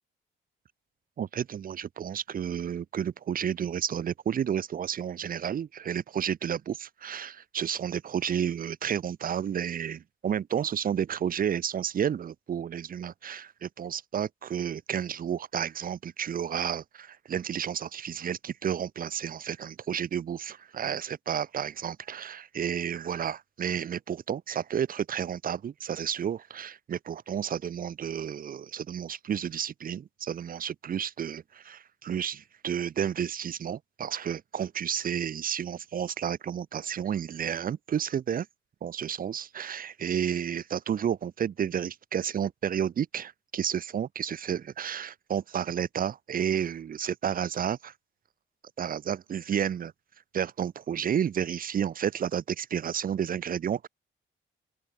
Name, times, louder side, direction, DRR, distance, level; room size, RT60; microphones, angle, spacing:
voice 1, 1.2-38.5 38.8-47.9 48.8-49.9 50.3-53.9, right 8 dB, 45° right, 0.9 m, -31 dB
open air
cardioid pair, 140°, 20 cm